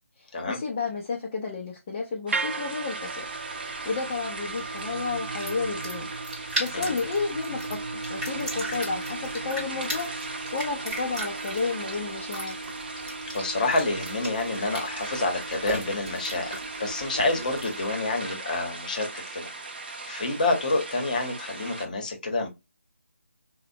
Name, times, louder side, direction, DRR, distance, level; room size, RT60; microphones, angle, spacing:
voice 1, 0.2-3.3 3.9-6.1 6.6-7.8 8.1-10.1 10.5-12.6, left 4 dB, 15° left, 0.3 m, -31 dB
sound 1, 2.3-21.9, right 3 dB, 40° right, 0.6 m, -38 dB
sound 2, 2.3-18.5, right 3 dB, 85° right, 0.4 m, -38 dB
sound 3, 3.1-17.9, right 1 dB, 5° right, 0.8 m, -39 dB
voice 2, 13.3-16.5 16.8-19.5 20.1-22.5, left 2 dB, 35° left, 0.7 m, -28 dB
4.0 x 2.0 x 2.6 m
figure-of-eight pair, 165°, 8 cm